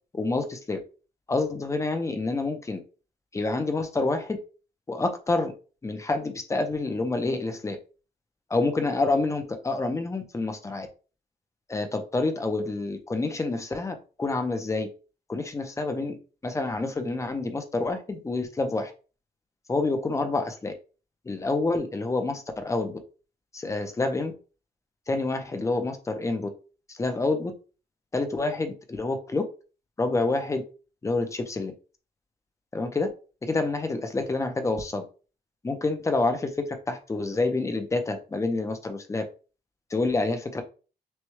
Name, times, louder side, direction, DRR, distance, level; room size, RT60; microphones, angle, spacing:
voice 1, 0.1-0.8 1.3-2.8 3.3-4.4 4.9-5.5 5.8-7.8 8.5-10.9 11.7-14.9 15.3-16.2 16.4-18.9 19.7-20.7 21.3-22.9 23.5-24.3 25.1-26.5 26.9-27.5 28.1-29.4 30.0-30.6 31.0-31.7 32.7-33.1 33.4-35.0 35.6-36.5 36.9-39.2 39.9-40.6, left 3 dB, 15° left, 7 dB, 0.5 m, -27 dB
6.2 x 2.2 x 3.1 m, 0.35 s
wide cardioid pair, 175°, 17 cm